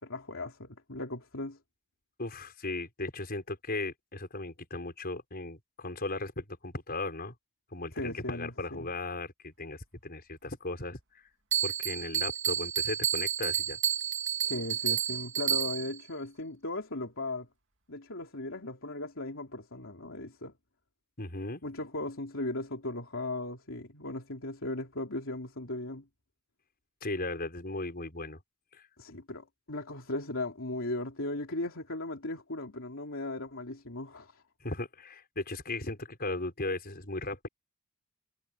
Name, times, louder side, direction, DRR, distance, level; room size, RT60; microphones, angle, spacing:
voice 1, 0.0-1.6 7.9-8.9 14.4-17.5 17.9-20.5 21.6-26.1 29.0-34.4, left 2 dB, 65° left, 3.5 m, -37 dB
voice 2, 2.2-7.3 7.7-11.0 11.6-13.8 21.2-21.6 27.0-28.4 28.7-28.8 34.6-37.5, left 2 dB, 45° left, 5.9 m, -37 dB
Bell, 11.5-16.0, right 9 dB, 60° right, 2.6 m, -30 dB
head